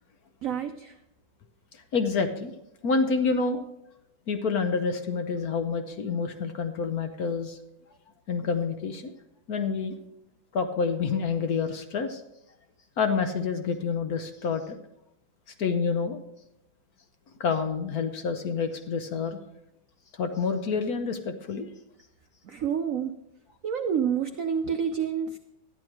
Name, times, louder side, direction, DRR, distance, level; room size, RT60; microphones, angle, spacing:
voice 1, 0.4-1.0 22.4-23.2 23.6-25.4, right 7 dB, 80° right, 7 dB, 0.7 m, -28 dB
voice 2, 1.7-2.5 2.8-3.6 4.3-7.6 8.3-9.1 9.5-9.9 10.5-12.2 13.0-14.8 15.6-16.2 17.4-19.4 20.2-21.7, left 5 dB, 60° left, 7 dB, 1.1 m, -28 dB
12.5 x 10.5 x 4.6 m, 0.86 s
omnidirectional pair, 2.2 m